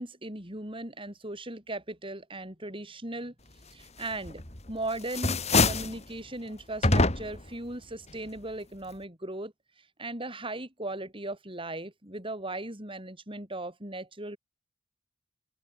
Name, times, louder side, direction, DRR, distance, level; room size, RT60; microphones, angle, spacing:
voice 1, 0.0-3.3 3.7-4.4 4.7-9.5 10.0-14.4, right 2 dB, 25° right, 7.1 m, -38 dB
sound 1, 4.3-4.7 5.0-6.0 6.8-7.5, left 3 dB, 35° left, 3.2 m, -25 dB
open air
head